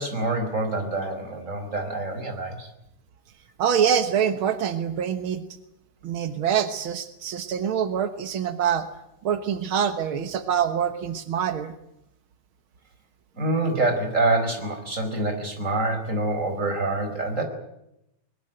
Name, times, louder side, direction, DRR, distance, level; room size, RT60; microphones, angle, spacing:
voice 1, 0.0-2.7 13.3-17.4, right 2 dB, 20° right, 5 dB, 4.7 m, -26 dB
voice 2, 3.6-5.4 6.0-8.9 9.2-11.7, right 8 dB, 75° right, 9 dB, 1.2 m, -25 dB
21.0 x 21.0 x 9.1 m, 0.83 s
omnidirectional pair, 4.3 m